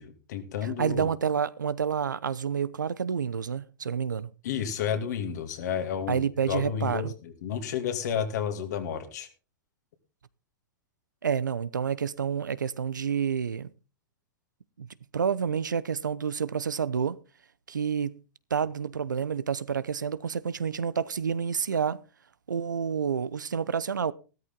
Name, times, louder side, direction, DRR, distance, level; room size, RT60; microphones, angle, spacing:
voice 1, 0.0-1.1 4.4-9.3, left 8 dB, 65° left, 2.5 m, -31 dB
voice 2, 0.8-4.3 6.1-7.1 11.2-13.7 14.8-14.9 15.1-17.2 17.7-18.2 18.5-22.0 22.5-24.1, right 7 dB, 90° right, 0.7 m, -29 dB
13.5 x 13.0 x 3.8 m
hypercardioid pair, 105°, 10 cm